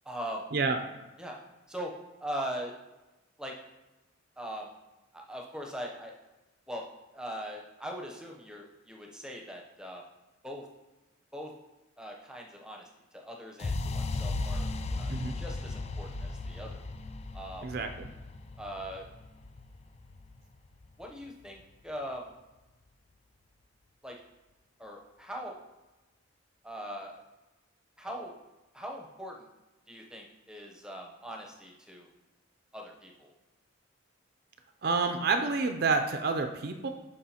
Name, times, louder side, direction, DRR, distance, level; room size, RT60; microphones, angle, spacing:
voice 1, 0.0-0.5 1.2-1.4 1.7-1.9 2.2-2.7 3.4-3.6 4.4-4.7 5.1-6.1 6.7-6.8 7.1-10.0 10.4-10.7 11.3-11.5 12.0-14.7 15.0-16.8 17.3-17.7 18.6-19.1 21.0-22.3 24.0-24.2 24.8-25.6 26.6-27.2 28.0-28.4 28.7-29.5 29.9-32.1 32.7-33.3, equal, 5° right, 0 dB, 0.7 m, -41 dB
sound 1, 13.6-21.5, left 2 dB, 30° left, 0.3 m, -36 dB
voice 2, 17.6-18.1 34.8-36.9, right 4 dB, 50° right, 6 dB, 0.4 m, -28 dB
11.5 x 4.7 x 2.9 m, 1.1 s
head